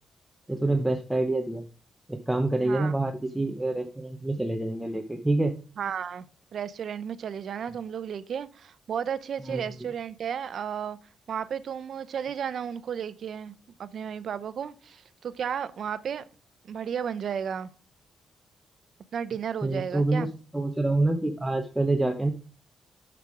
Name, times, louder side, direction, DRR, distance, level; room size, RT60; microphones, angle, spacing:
voice 1, 0.5-1.6 2.1-5.5 9.4-9.6 19.6-22.3, right 2 dB, 5° right, 3 dB, 0.8 m, -27 dB
voice 2, 5.8-6.2 6.5-11.0 11.3-13.5 13.8-16.2 16.6-17.7 19.1-20.3, right 8 dB, 60° right, 14 dB, 0.6 m, -33 dB
6.7 x 6.0 x 4.8 m, 0.37 s
cardioid pair, 115°, 0 cm